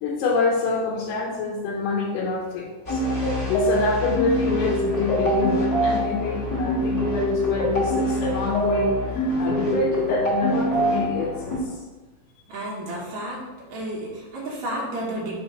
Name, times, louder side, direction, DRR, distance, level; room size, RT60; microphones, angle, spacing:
voice 1, 0.0-11.6, left 3 dB, 85° left, -3 dB, 2.7 m, -26 dB
sound 1, 2.8-11.6, equal, 65° left, 0.7 m, -24 dB
voice 2, 12.5-13.4 13.7-15.4, right 1 dB, 70° right, -5 dB, 1.8 m, -31 dB
6.2 x 2.9 x 5.4 m, 1.2 s
omnidirectional pair, 4.7 m